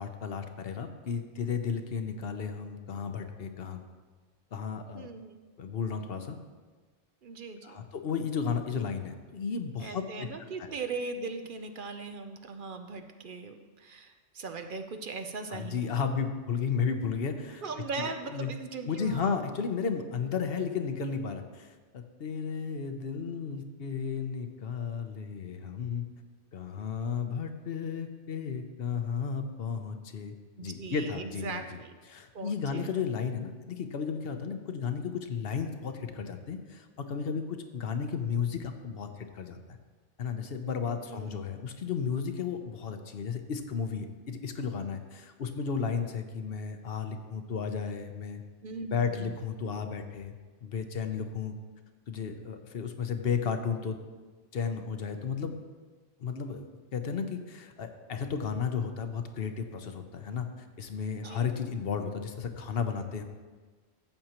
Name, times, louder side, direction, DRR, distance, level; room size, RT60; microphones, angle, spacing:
voice 1, 0.0-3.8 4.5-5.1 5.6-6.4 7.6-10.3 10.6-10.7 15.5-17.6 18.0-18.5 18.8-26.1 26.5-30.4 30.6-31.8 32.1-39.8 40.2-48.4 48.9-50.4 50.6-51.5 52.1-54.0 54.5-55.6 56.2-56.7 56.9-60.5 60.8-63.2, left 6 dB, 55° left, 7 dB, 0.9 m, -33 dB
voice 2, 5.0-5.4 7.2-7.8 9.8-15.9 17.6-19.4 30.6-31.9 32.3-32.9 41.1-41.4 48.6-49.3 61.1-61.5, right 4 dB, 55° right, 7 dB, 0.6 m, -39 dB
14.5 x 7.8 x 3.0 m, 1.4 s
omnidirectional pair, 1.3 m